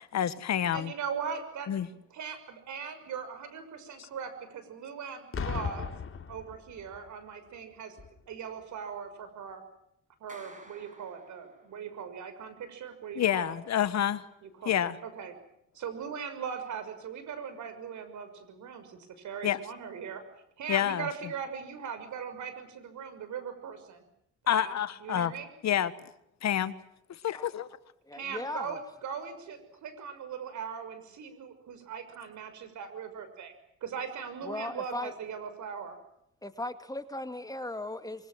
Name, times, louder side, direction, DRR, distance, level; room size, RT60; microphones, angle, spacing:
voice 1, 0.1-0.9 1.7-1.9 13.1-14.2 14.6-15.0 19.4-19.6 20.7-21.1 24.5-25.3 25.6-25.9 26.4-26.8 27.1-27.7, left 10 dB, 60° left, 14 dB, 1.6 m, -28 dB
voice 2, 0.7-1.7 2.1-5.9 6.3-8.0 8.3-9.6 10.2-13.6 14.4-14.7 15.0-15.3 15.7-20.2 20.6-24.0 24.4-25.5 28.1-33.5 33.8-36.0, right 7 dB, 70° right, 10 dB, 6.2 m, -40 dB
Boom, 5.3-7.1 8.0-8.2, left 6 dB, 45° left, 3.2 m, -36 dB
Clapping, 10.3-11.9, right 2 dB, 25° right, 7.5 m, -53 dB
voice 3, 28.1-28.8 34.4-35.1 36.4-38.3, left 1 dB, 10° left, 8 dB, 2.4 m, -37 dB
24.5 x 24.0 x 7.8 m, 0.75 s
cardioid pair, 90°, 30 cm